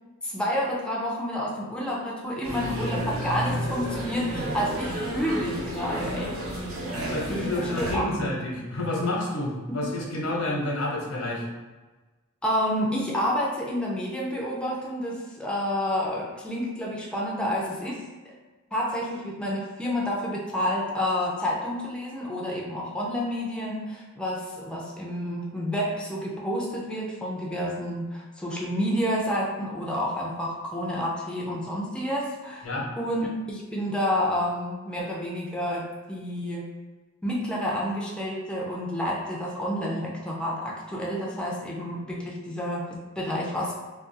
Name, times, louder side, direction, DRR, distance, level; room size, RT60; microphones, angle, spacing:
voice 1, 0.2-6.3 7.3-8.3 9.7-9.9 12.4-18.0 18.7-32.7 33.0-36.7 37.2-43.7, equal, 5° left, -3 dB, 0.4 m, -29 dB
sound 1, 2.4-7.9, equal, 75° right, 0.9 m, -31 dB
voice 2, 7.1-11.4 32.6-32.8, left 1 dB, 85° left, -2 dB, 0.8 m, -29 dB
2.5 x 2.2 x 3.8 m, 1.3 s
head